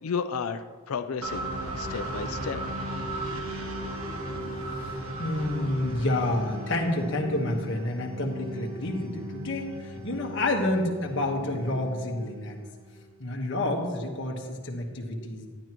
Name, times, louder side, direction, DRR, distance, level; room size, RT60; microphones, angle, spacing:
voice 1, 0.0-1.5 1.8-2.6, left 6 dB, 75° left, 9 dB, 0.5 m, -32 dB
sound 1, 1.2-13.0, right 1 dB, 80° right, 1.3 m, -36 dB
voice 2, 5.2-12.6 13.2-15.5, left 1 dB, 55° left, 0 dB, 1.4 m, -29 dB
11.5 x 10.5 x 3.0 m, 1.4 s
head